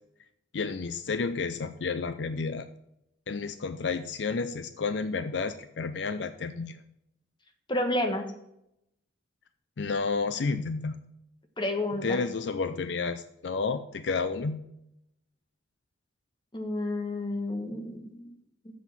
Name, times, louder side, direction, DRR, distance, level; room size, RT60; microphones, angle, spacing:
voice 1, 0.5-2.7 3.3-6.8 9.8-10.9 12.0-14.6, left 4 dB, 70° left, 11 dB, 0.5 m, -31 dB
voice 2, 7.7-8.3 11.6-12.2 16.5-18.3, left 1 dB, 25° left, 5 dB, 1.3 m, -30 dB
7.2 x 6.2 x 7.4 m, 0.80 s
head